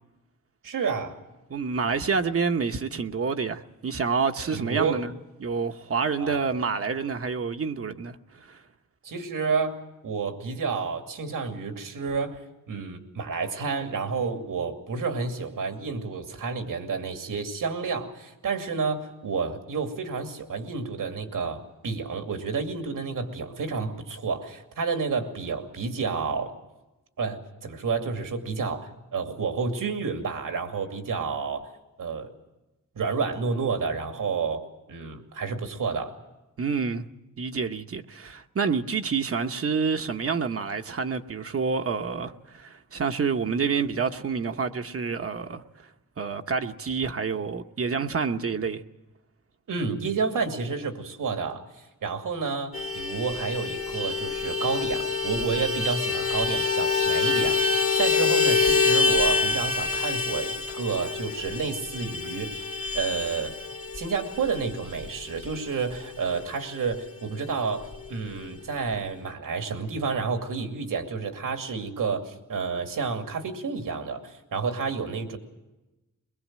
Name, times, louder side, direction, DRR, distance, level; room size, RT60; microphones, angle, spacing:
voice 1, 0.6-1.2 4.5-5.0 6.2-6.4 9.0-12.4 12.7-26.5 27.2-31.7 32.0-32.3 32.9-36.1 49.7-51.6 52.0-63.5 63.9-75.4, right 5 dB, 85° right, 2.5 m, -30 dB
voice 2, 1.5-5.1 5.4-8.6 36.6-37.1 37.4-45.6 46.2-48.8, right 5 dB, 45° right, 1.0 m, -28 dB
Vehicle horn car horn honking, 52.7-66.6 66.9-67.0 67.3-67.5 67.8-68.5, left 4 dB, 45° left, 1.7 m, -26 dB
22.5 x 21.5 x 7.5 m
wide cardioid pair, 140°, 32 cm